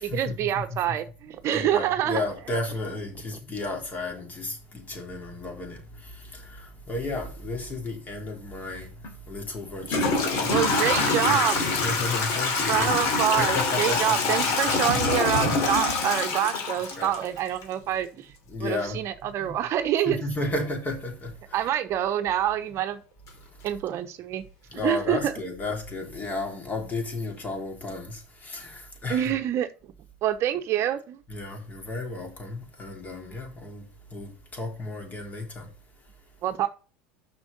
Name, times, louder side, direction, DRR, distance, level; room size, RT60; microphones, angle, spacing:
voice 1, 0.0-2.2 10.5-11.6 12.7-18.3 18.6-20.2 21.5-23.0 23.6-24.4 24.8-25.3 29.1-29.7 30.2-31.2 36.4-36.7, right 11 dB, 50° right, 0.9 m, -26 dB
voice 2, 1.4-4.5 4.9-5.8 6.9-8.9 9.3-10.5 11.3-11.4 11.7-12.9 13.4-14.3 14.6-14.7 17.0-17.1 18.5-19.0 19.4-19.5 20.1-21.3 24.7-28.1 28.5-28.7 29.0-29.4 31.3-33.8 34.1-34.3 34.6-35.6, left 2 dB, 30° left, 3.6 m, -33 dB
Toilet flush / Trickle dribble, 9.0-9.1 9.8-17.6, left 3 dB, 60° left, 2.8 m, -25 dB
6.2 x 6.1 x 5.3 m
hypercardioid pair, 90°, 6 cm